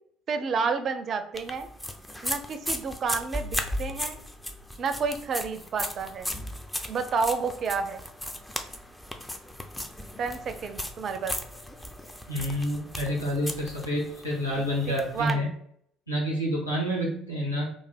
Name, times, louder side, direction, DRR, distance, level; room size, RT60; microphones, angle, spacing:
voice 1, 0.3-1.7 2.2-4.2 4.8-6.3 6.9-8.0 10.2-11.4 14.6-15.5, right 5 dB, 40° right, 8 dB, 0.4 m, -30 dB
sound 1, 1.3-15.3, left 1 dB, 10° left, 0.5 m, -36 dB
voice 2, 12.3-15.5 16.1-17.6, equal, 85° left, -5 dB, 0.9 m, -28 dB
3.3 x 2.4 x 4.0 m, 0.68 s
figure-of-eight pair, 55°, 0 cm